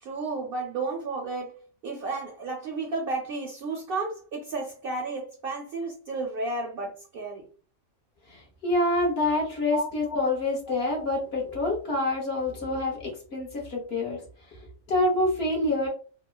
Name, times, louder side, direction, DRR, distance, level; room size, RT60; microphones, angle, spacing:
voice 1, 0.0-1.5 1.8-7.4 9.7-9.8, right 3 dB, 60° right, 1 dB, 0.6 m, -32 dB
voice 2, 8.3-14.2 14.9-15.9, left 2 dB, 55° left, -1 dB, 1.1 m, -27 dB
3.0 x 2.1 x 2.3 m, 0.40 s
omnidirectional pair, 1.3 m